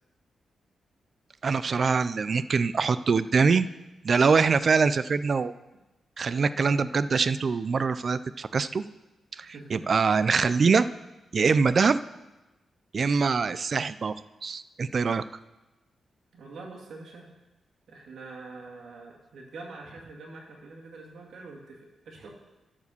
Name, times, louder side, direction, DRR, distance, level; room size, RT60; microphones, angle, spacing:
voice 1, 1.4-3.7 4.0-5.5 6.2-8.8 9.4-10.9 11.3-12.0 12.9-14.1 14.4-15.2, right 5 dB, 40° right, 15 dB, 0.3 m, -24 dB
voice 2, 9.4-9.9 16.3-17.3 17.9-22.4, right 3 dB, 75° right, 0 dB, 2.2 m, -45 dB
12.0 x 4.8 x 6.9 m, 1.1 s
wide cardioid pair, 140°, 0 cm